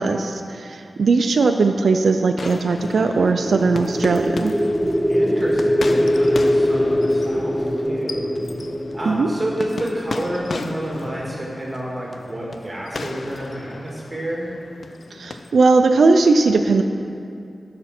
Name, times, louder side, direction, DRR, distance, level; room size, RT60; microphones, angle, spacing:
voice 1, 0.0-4.6 9.1-9.3 15.1-16.8, right 3 dB, 90° right, 5 dB, 0.4 m, -18 dB
sound 1, 2.4-15.5, left 3 dB, 65° left, 0.4 m, -35 dB
sound 2, 2.7-10.8, equal, 5° right, 0.7 m, -22 dB
voice 2, 5.1-8.3 8.9-14.5, right 1 dB, 25° right, -4 dB, 1.9 m, -29 dB
12.5 x 5.9 x 4.3 m, 2.5 s
wide cardioid pair, 75°, 0 cm